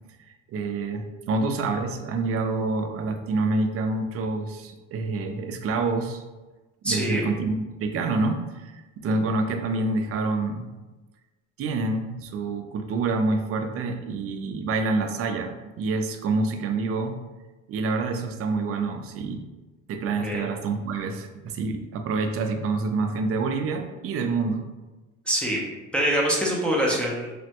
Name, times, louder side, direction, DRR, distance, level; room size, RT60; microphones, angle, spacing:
voice 1, 0.5-6.2 6.8-10.7 11.6-17.2 17.7-19.4 19.9-24.7, right 3 dB, 45° right, 6 dB, 0.4 m, -27 dB
voice 2, 6.8-7.2 20.2-20.4 25.3-25.6 25.9-27.3, right 1 dB, 5° left, -4 dB, 0.5 m, -24 dB
3.3 x 2.1 x 2.8 m, 1.2 s
cardioid pair, 115°, 31 cm